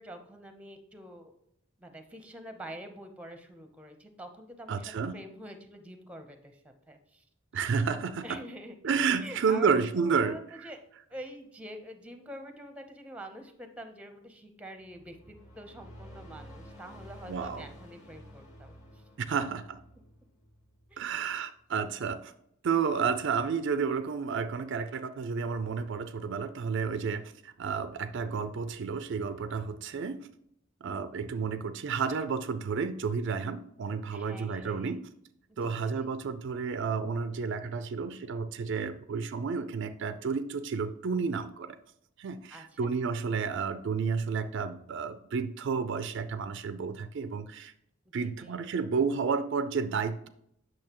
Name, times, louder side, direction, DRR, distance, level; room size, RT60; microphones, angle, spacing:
voice 1, 0.0-1.3 1.8-7.2 8.2-8.9 9.2-10.8 11.1-19.0 20.9-21.1 34.1-35.0 35.6-36.1 42.5-42.9 48.2-48.6, right 1 dB, 5° right, 7 dB, 0.7 m, -46 dB
voice 2, 4.7-5.2 7.5-8.4 8.8-10.7 17.3-17.7 19.2-19.8 21.0-22.3 22.6-30.3 30.8-35.1 35.6-41.8 42.2-47.7 48.1-50.3, right 5 dB, 55° right, 11 dB, 0.4 m, -31 dB
sound 1, 14.8-21.4, equal, 35° left, 1.8 m, -51 dB
8.6 x 6.4 x 2.9 m, 0.75 s
head